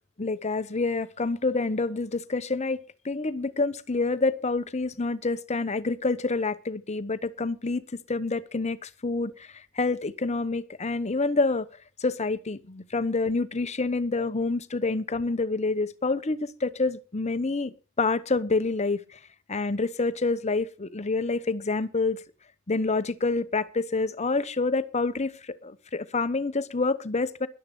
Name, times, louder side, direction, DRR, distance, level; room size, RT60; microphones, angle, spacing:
voice 1, 0.2-7.8 8.1-11.7 12.0-19.2 19.5-22.2 22.7-27.5, left 3 dB, 30° left, 0.9 m, -27 dB
13.0 x 11.5 x 5.3 m
head